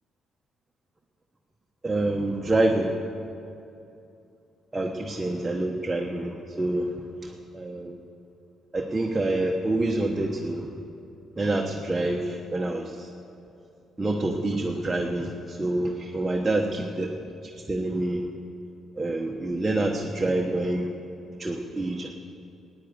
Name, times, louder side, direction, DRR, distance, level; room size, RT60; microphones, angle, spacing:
voice 1, 1.8-2.9 4.7-6.9 7.5-8.0 8.7-10.7 11.4-13.1 14.0-17.1 17.7-18.2 19.0-20.9 21.4-22.1, right 2 dB, 15° right, 1 dB, 1.1 m, -27 dB
13.5 x 9.8 x 8.0 m, 2.7 s
cardioid pair, 90°, 0 cm